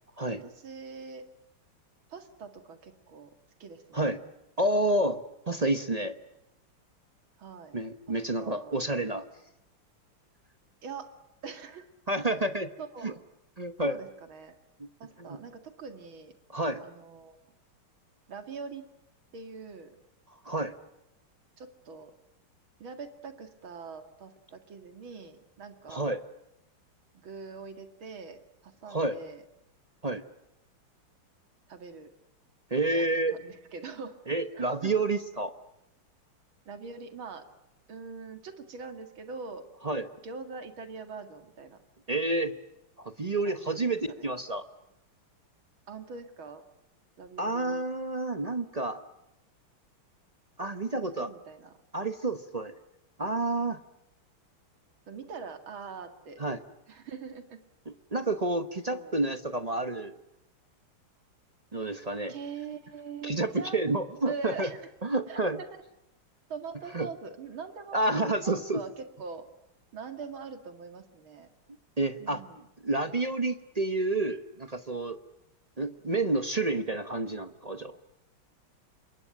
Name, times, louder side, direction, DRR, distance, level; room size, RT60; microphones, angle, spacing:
voice 1, 0.3-1.2 2.1-3.3 3.6-4.1 7.4-7.8 8.4-8.8 10.8-11.1 11.4-11.9 12.3-12.4 12.8-13.2 13.8-14.5 15.0-16.3 16.8-17.4 18.3-18.8 19.3-20.0 21.6-22.1 22.8-26.2 27.1-29.4 31.7-32.1 32.9-33.0 33.3-34.2 34.5-34.9 36.7-37.4 37.9-39.6 40.2-41.8 43.4-44.3 45.9-46.6 47.2-47.8 50.8-51.8 55.1-56.4 56.9-57.6 58.9-59.1 62.3-63.8 64.3-64.9 65.3-65.7 66.5-68.1 68.4-69.4 69.9-71.5 72.2-72.7, right 5 dB, 70° right, 8 dB, 2.9 m, -43 dB
voice 2, 4.6-6.1 7.7-9.2 12.1-12.7 13.0-13.1 13.6-14.0 14.8-14.9 15.3-15.4 16.5-16.8 20.4-20.7 25.9-26.2 28.9-29.2 30.0-30.2 32.7-33.3 34.3-35.5 39.8-40.1 42.1-42.5 43.0-44.7 47.4-49.0 50.6-51.3 51.9-52.7 53.2-53.8 56.4-56.6 58.1-60.1 61.7-62.3 63.2-64.7 65.0-65.6 66.9-67.1 67.9-68.8 72.0-72.4 72.8-75.2 75.8-77.9, right 2 dB, 35° right, 10 dB, 0.6 m, -29 dB
27.5 x 22.5 x 9.0 m, 0.87 s
omnidirectional pair, 2.4 m